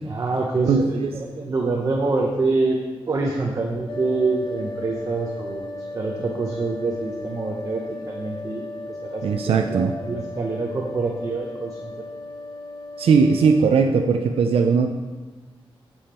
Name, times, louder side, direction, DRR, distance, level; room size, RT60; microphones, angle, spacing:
voice 1, 0.0-2.8 3.1-5.7 5.9-11.9, right 3 dB, 35° right, 0 dB, 0.8 m, -26 dB
voice 2, 0.7-1.1 9.2-9.9 13.0-14.9, right 5 dB, 90° right, 4 dB, 0.5 m, -19 dB
sound 1, 3.9-13.6, left 2 dB, 60° left, 0.5 m, -36 dB
8.6 x 7.2 x 4.4 m, 1.3 s
wide cardioid pair, 175°, 10 cm